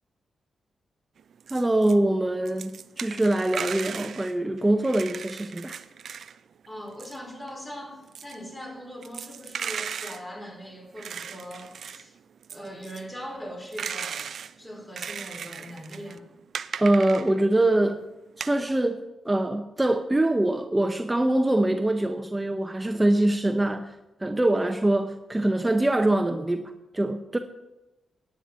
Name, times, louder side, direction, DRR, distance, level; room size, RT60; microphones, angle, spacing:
sound 1, 1.2-2.0 2.2-6.4 6.6-17.6 18.1-18.6, right 7 dB, 70° right, 0.4 m, -37 dB
voice 1, 1.5-5.8 16.8-18.0 18.4-23.9 24.2-27.4, right 1 dB, 20° right, 0.8 m, -24 dB
voice 2, 6.7-12.2 12.5-14.3 14.6-16.3, equal, 25° left, 5.1 m, -40 dB
10.0 x 9.0 x 5.8 m
supercardioid pair, 40°, 0 cm